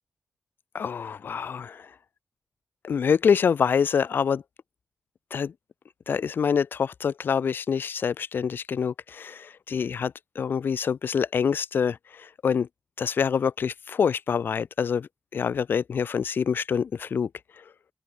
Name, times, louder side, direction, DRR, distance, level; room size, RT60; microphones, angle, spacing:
voice 1, 0.7-1.9 2.8-4.4 5.3-5.5 6.1-12.7 13.0-17.3, left 6 dB, 80° left, 3.5 m, -26 dB
open air
cardioid pair, 55°, 4 cm